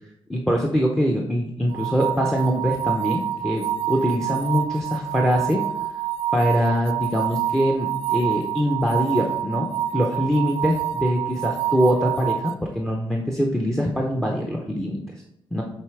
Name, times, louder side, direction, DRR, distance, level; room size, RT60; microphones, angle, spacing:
voice 1, 0.3-5.6 6.3-15.0 15.5-15.6, equal, 5° left, 1 dB, 0.6 m, -23 dB
sound 1, 1.7-12.5, right 11 dB, 85° right, 0.6 m, -27 dB
7.6 x 3.8 x 4.8 m, 0.84 s
wide cardioid pair, 170°, 10 cm